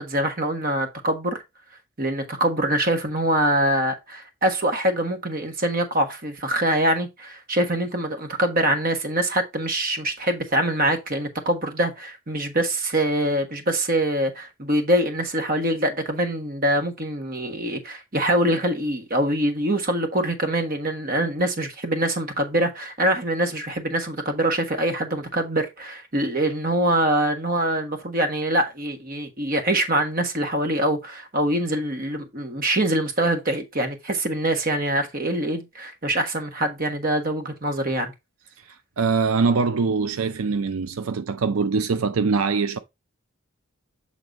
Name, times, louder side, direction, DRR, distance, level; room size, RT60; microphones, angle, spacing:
voice 1, 0.0-1.4 2.0-38.1, right 1 dB, 40° right, 1.4 m, -24 dB
voice 2, 38.7-42.8, right 4 dB, 85° right, 0.5 m, -23 dB
7.9 x 3.9 x 4.0 m
head